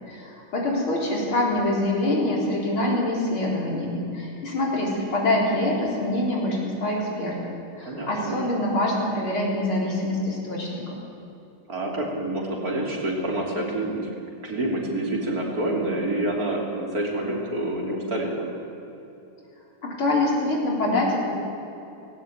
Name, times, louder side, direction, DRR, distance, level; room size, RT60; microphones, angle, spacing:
voice 1, 0.0-7.4 7.8-10.8 19.8-21.3, left 1 dB, 90° left, -2 dB, 4.8 m, -25 dB
voice 2, 7.8-8.4 11.7-14.1 14.4-18.5, right 1 dB, 45° right, -1 dB, 3.6 m, -27 dB
18.0 x 17.0 x 8.7 m, 2.9 s
omnidirectional pair, 2.2 m